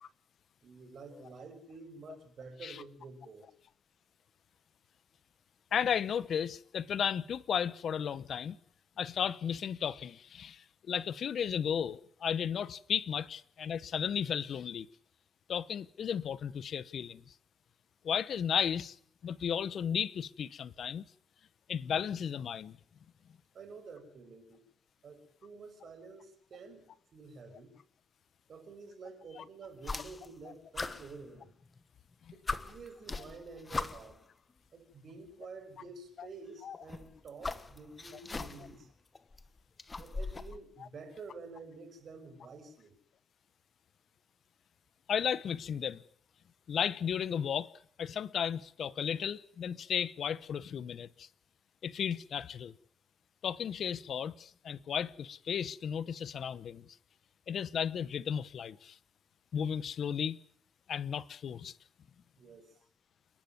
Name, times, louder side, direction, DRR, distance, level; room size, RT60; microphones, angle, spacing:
voice 1, 0.6-3.5 23.5-24.6 25.0-26.8 27.1-27.7 28.5-31.5 32.3-34.2 34.7-38.9 40.0-42.9 62.4-62.7, right 4 dB, 55° right, 6.7 m, -49 dB
voice 2, 5.7-8.6 9.0-14.9 15.5-17.3 18.0-19.0 19.2-21.0 21.7-22.8 29.4-29.5 36.2-36.3 36.6-36.8 40.8-40.9 45.1-46.0 46.7-47.7 48.0-51.3 51.8-52.7 53.4-56.8 57.5-59.0 59.5-60.4 60.9-61.7, left 8 dB, 60° left, 1.0 m, -34 dB
sound 1, 29.8-30.4 30.7-31.8 32.1-32.2 32.5-34.2 35.3-35.4 36.7-38.8 39.1-40.6, left 3 dB, 25° left, 1.4 m, -39 dB
29.5 x 12.0 x 9.5 m
cardioid pair, 90°, 0 cm